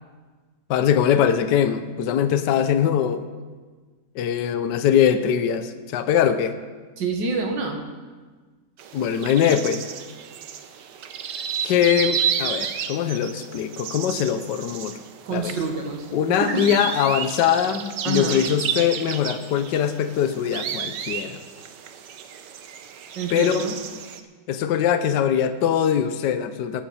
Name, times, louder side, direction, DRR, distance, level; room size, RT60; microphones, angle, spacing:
voice 1, 0.7-3.2 4.1-6.5 8.9-9.8 11.6-14.9 15.3-15.5 16.1-21.4 23.3-23.7 24.5-26.8, left 9 dB, 75° left, 10 dB, 1.4 m, -22 dB
voice 2, 7.0-7.8 15.3-16.6 18.0-18.4 23.2-23.7, right 3 dB, 90° right, 2 dB, 2.4 m, -27 dB
sound 1, 8.8-24.2, right 8 dB, 75° right, 1.4 m, -32 dB
20.0 x 10.0 x 4.3 m, 1.4 s
omnidirectional pair, 1.9 m